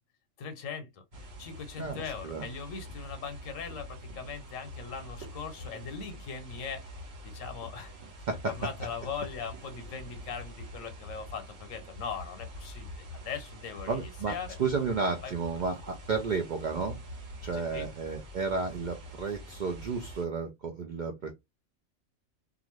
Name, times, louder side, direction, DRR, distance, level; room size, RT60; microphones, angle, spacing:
voice 1, 0.4-1.0 1.4-6.8 7.2-8.0 8.4-14.6 15.2-15.3 17.5-17.9, left 6 dB, 90° left, 1.0 m, -40 dB
sound 1, 1.1-20.2, equal, 60° right, 1.1 m, -45 dB
voice 2, 13.9-17.0 17.4-21.3, right 4 dB, 75° right, 0.4 m, -32 dB
2.4 x 2.4 x 3.0 m
omnidirectional pair, 1.3 m